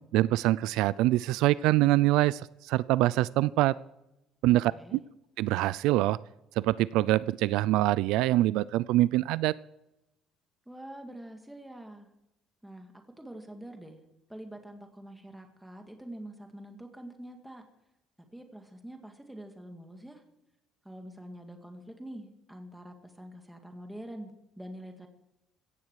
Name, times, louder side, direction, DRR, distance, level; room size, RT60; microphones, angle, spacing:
voice 1, 0.1-3.8 4.4-5.0 5.4-6.2 6.6-9.5, right 16 dB, 75° right, 19 dB, 0.4 m, -25 dB
voice 2, 4.5-5.0 10.7-12.1 12.6-12.9 13.2-17.6 18.3-20.2 20.8-25.1, right 1 dB, 5° right, 4 dB, 2.0 m, -45 dB
16.5 x 14.0 x 4.7 m, 0.89 s
cardioid pair, 160°, 0 cm